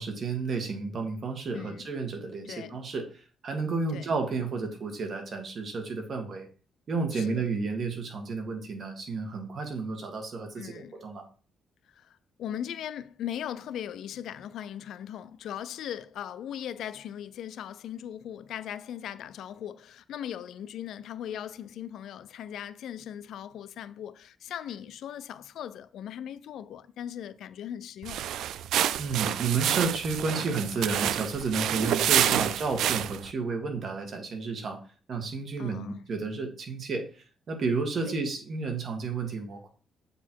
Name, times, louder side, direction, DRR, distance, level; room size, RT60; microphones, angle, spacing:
voice 1, 0.0-6.5 6.9-11.2 29.0-34.8 35.1-37.1 37.5-39.7, right 4 dB, 50° right, 1.8 m, -31 dB
voice 2, 1.5-1.9 2.5-2.8 3.9-4.1 7.1-7.5 10.6-11.0 12.0-28.2 32.3-32.5 35.6-36.0 38.0-38.2, left 10 dB, 75° left, 0.4 m, -39 dB
sound 1, 28.0-33.3, right 11 dB, 85° right, 0.3 m, -28 dB
7.9 x 4.2 x 4.6 m
cardioid pair, 105°, 0 cm